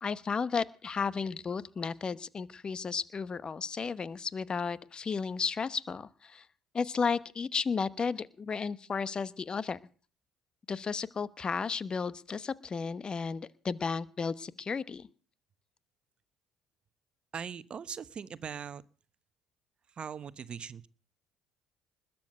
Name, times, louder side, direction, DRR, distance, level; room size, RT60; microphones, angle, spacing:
voice 1, 0.0-6.5 6.7-9.8 10.7-15.1, left 5 dB, 35° left, 18 dB, 1.0 m, -33 dB
voice 2, 17.3-18.8 19.9-20.9, right 7 dB, 45° right, 16 dB, 1.0 m, -40 dB
20.5 x 7.2 x 7.8 m, 0.41 s
hypercardioid pair, 55°, 2 cm